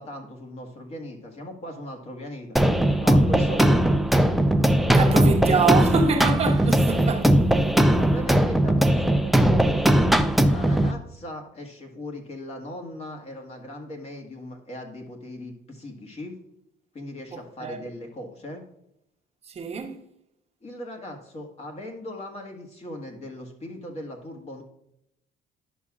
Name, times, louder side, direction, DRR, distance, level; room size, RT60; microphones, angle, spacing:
voice 1, 0.0-2.6 3.0-4.0 7.7-16.4 16.9-18.6 20.6-24.6, left 1 dB, 40° left, 1.7 m, -39 dB
sound 1, 2.6-10.9, right 1 dB, ahead, 0.4 m, -19 dB
voice 2, 4.9-7.4 17.3-17.8 19.5-20.0, right 5 dB, 35° right, 0.9 m, -26 dB
11.0 x 6.0 x 2.4 m
cardioid pair, 110°, 17 cm